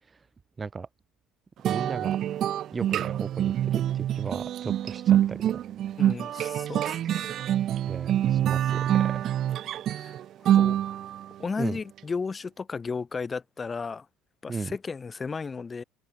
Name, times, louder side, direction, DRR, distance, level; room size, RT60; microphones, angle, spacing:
voice 1, 0.6-0.9 1.6-2.2 2.7-5.6 6.7-6.9 7.9-9.3 11.6-11.8 14.5-14.7, right 4 dB, 25° right, 6.3 m, -36 dB
sound 1, 1.6-11.3, right 11 dB, 50° right, 3.7 m, -26 dB
voice 2, 6.0-7.3 9.9-10.2 10.5-11.0 11.4-14.1 14.4-15.8, left 5 dB, 25° left, 7.1 m, -34 dB
open air
supercardioid pair, 100°, 0 cm